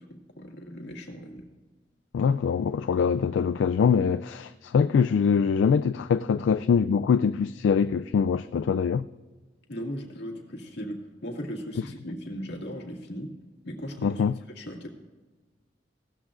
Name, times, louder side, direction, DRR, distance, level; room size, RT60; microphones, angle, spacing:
voice 1, 0.0-1.5 9.7-13.3 13.6-14.2 14.5-14.9, equal, 65° left, 2.0 m, -37 dB
voice 2, 2.1-9.1 14.0-14.3, left 6 dB, 85° left, 0.3 m, -23 dB
17.0 x 13.0 x 2.5 m
head